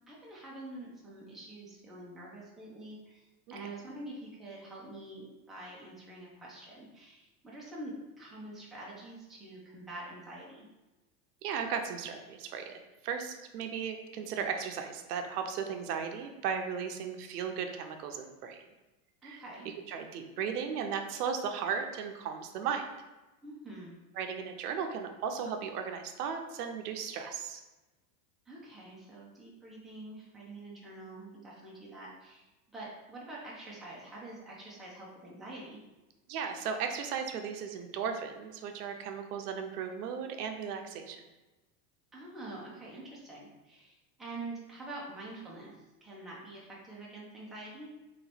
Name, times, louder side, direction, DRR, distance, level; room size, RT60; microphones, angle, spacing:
voice 1, 0.1-10.7 19.2-19.7 23.4-24.0 28.5-32.5 32.7-35.8 42.1-45.7 46.0-47.9, right 2 dB, ahead, -6 dB, 0.5 m, -46 dB
voice 2, 11.4-18.6 19.2-19.4 19.9-22.9 24.2-27.6 36.3-41.2, right 7 dB, 90° right, 5 dB, 0.7 m, -36 dB
3.2 x 2.9 x 4.1 m, 1.1 s
supercardioid pair, 140°, 45 cm